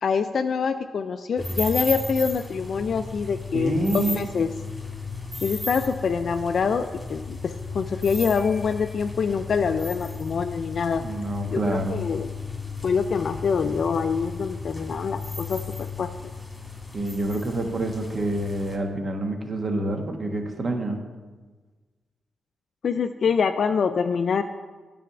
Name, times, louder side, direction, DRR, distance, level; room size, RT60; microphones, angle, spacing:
voice 1, 0.0-4.6 5.4-11.0 11.5-12.3 12.8-16.1 22.8-24.4, left 6 dB, 65° left, 8 dB, 0.3 m, -25 dB
sound 1, 1.4-18.8, left 3 dB, 15° left, 1.8 m, -35 dB
voice 2, 3.5-4.2 10.9-12.0 16.9-21.0, right 1 dB, 45° right, 3 dB, 1.2 m, -27 dB
9.3 x 3.4 x 7.0 m, 1.3 s
cardioid pair, 70°, 0 cm